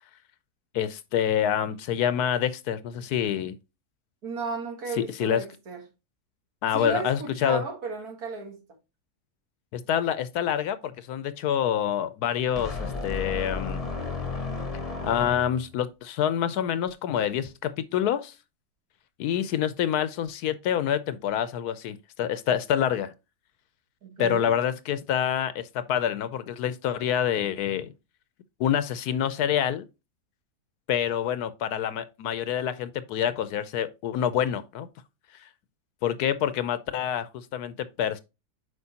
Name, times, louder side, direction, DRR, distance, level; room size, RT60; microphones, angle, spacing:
voice 1, 0.7-3.5 5.0-5.4 6.6-7.6 9.7-13.8 15.0-18.3 19.2-23.1 24.2-27.9 28.6-29.9 30.9-34.9 36.0-38.2, left 9 dB, 75° left, 1.1 m, -27 dB
voice 2, 4.2-5.8 6.7-8.6 24.0-24.5, right 4 dB, 65° right, 2.1 m, -34 dB
sound 1, 12.6-15.7, left 4 dB, 25° left, 0.9 m, -33 dB
8.1 x 4.9 x 2.8 m
omnidirectional pair, 1.8 m